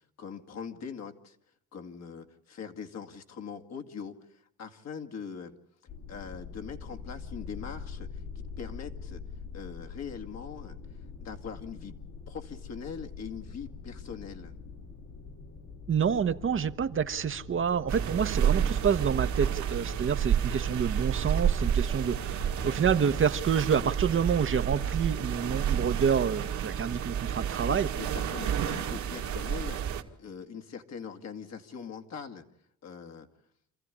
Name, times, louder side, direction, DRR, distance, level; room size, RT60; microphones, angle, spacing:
voice 1, 0.2-1.4 1.7-5.5 6.1-9.2 9.5-10.8 11.2-11.9 12.3-14.6 27.7-32.5 32.8-33.3, left 6 dB, 60° left, 5 dB, 2.2 m, -42 dB
sound 1, 5.9-25.0, left 5 dB, 80° left, 4.9 m, -44 dB
voice 2, 15.9-27.9, right 7 dB, 40° right, 10 dB, 1.0 m, -28 dB
sound 2, 17.9-30.0, right 9 dB, 70° right, 2.1 m, -30 dB
27.0 x 14.5 x 9.9 m, 0.69 s
cardioid pair, 90°, 30 cm